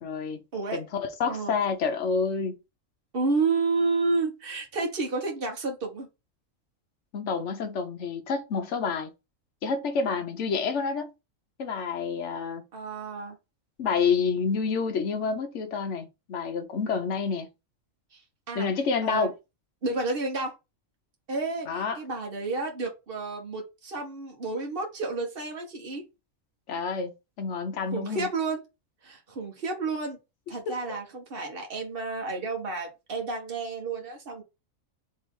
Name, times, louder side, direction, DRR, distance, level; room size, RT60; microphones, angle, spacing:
voice 1, 0.0-0.4 0.7-2.6 7.1-9.1 9.6-11.1 11.6-12.6 13.8-17.5 18.5-19.3 21.7-22.0 26.7-28.3 30.7-30.8, left 5 dB, 65° left, 1.2 m, -28 dB
voice 2, 3.1-6.1 12.7-13.4 18.5-18.7 19.0-19.3 19.8-20.5 21.3-26.1 27.9-28.6 29.0-30.2 30.5-34.4, right 3 dB, 45° right, 1.5 m, -30 dB
3.5 x 3.3 x 4.3 m
omnidirectional pair, 1.4 m